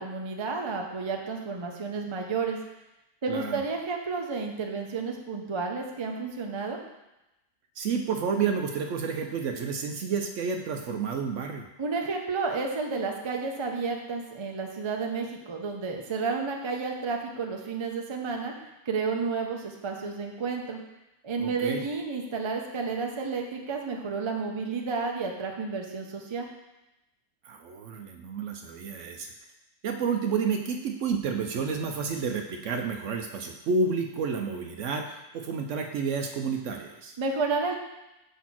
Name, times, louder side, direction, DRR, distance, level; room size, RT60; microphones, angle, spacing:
voice 1, 0.0-2.6 3.2-6.8 11.8-18.5 18.9-20.8 21.2-26.5 37.2-37.8, right 4 dB, 40° right, 2 dB, 0.4 m, -31 dB
voice 2, 3.3-3.6 7.8-11.7 21.4-21.8 27.4-29.3 29.8-37.2, right 5 dB, 65° right, 4 dB, 0.8 m, -30 dB
5.2 x 4.2 x 5.9 m, 0.94 s
omnidirectional pair, 1.6 m